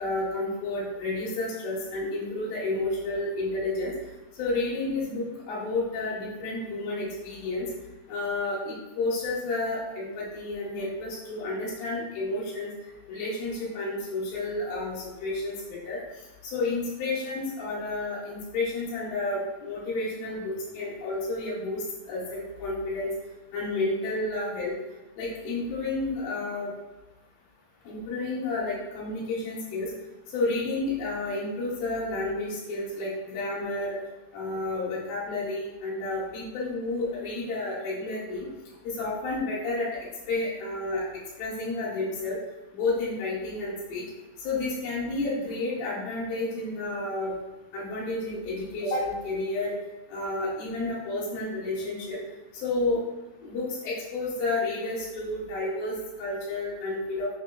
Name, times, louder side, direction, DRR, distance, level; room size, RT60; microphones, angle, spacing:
voice 1, 0.0-3.9 4.4-7.7 8.1-12.7 13.1-15.5 15.8-16.0 16.5-23.1 23.5-24.7 25.2-26.7 27.9-29.9 30.3-34.0 34.3-38.5 39.0-39.9 40.3-41.0 41.4-42.4 42.7-44.0 44.4-47.3 47.7-49.7 50.1-52.2 52.6-53.0 53.4-57.3, left 2 dB, 70° left, -8 dB, 2.5 m, -31 dB
6.1 x 3.0 x 2.2 m, 1.1 s
omnidirectional pair, 4.6 m